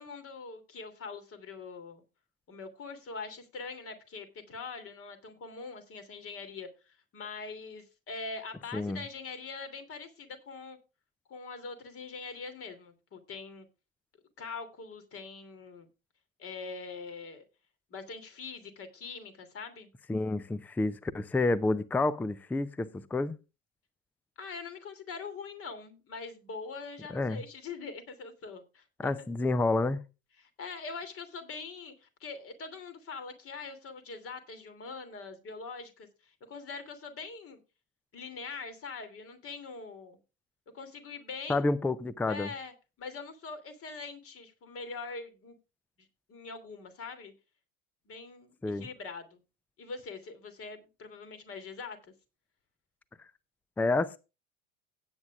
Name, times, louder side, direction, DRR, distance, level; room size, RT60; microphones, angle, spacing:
voice 1, 0.0-2.0 2.5-10.8 11.3-13.7 14.4-15.9 16.4-17.4 17.9-19.9 24.4-29.3 30.4-37.6 38.1-40.2 40.7-41.7 42.3-45.5 46.3-47.3 48.1-49.4 49.8-52.1, left 4 dB, 35° left, 3.0 m, -43 dB
voice 2, 20.1-23.4 27.1-27.4 29.0-30.0 41.5-42.5 48.6-48.9 53.8-54.2, left 2 dB, 5° left, 0.5 m, -29 dB
16.5 x 9.1 x 2.4 m
figure-of-eight pair, 75°, 39 cm